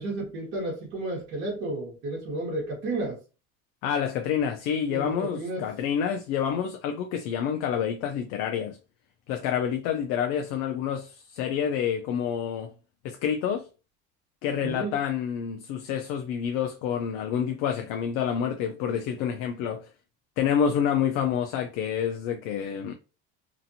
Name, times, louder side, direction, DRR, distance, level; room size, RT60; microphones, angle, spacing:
voice 1, 0.0-3.2 4.9-5.7 14.6-15.0, right 2 dB, 40° right, 1.2 m, -32 dB
voice 2, 3.8-8.8 9.3-12.7 13.0-13.7 14.4-19.9 20.4-22.9, left 8 dB, 65° left, 0.5 m, -28 dB
2.9 x 2.4 x 2.6 m
cardioid pair, 155°, 29 cm